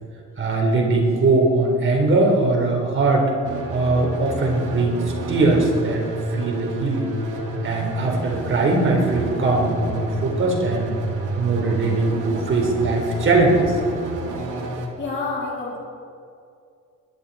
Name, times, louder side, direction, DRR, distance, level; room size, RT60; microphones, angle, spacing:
voice 1, 0.4-3.3 3.7-6.0 6.3-7.1 7.6-11.0 11.4-13.8, right 2 dB, 40° right, 0 dB, 3.8 m, -20 dB
sound 1, 3.4-14.9, right 2 dB, 85° right, 2.3 m, -30 dB
voice 2, 15.0-15.8, left 3 dB, 35° left, -6 dB, 3.5 m, -28 dB
21.0 x 12.0 x 4.3 m, 2.4 s
cardioid pair, 90°, 30 cm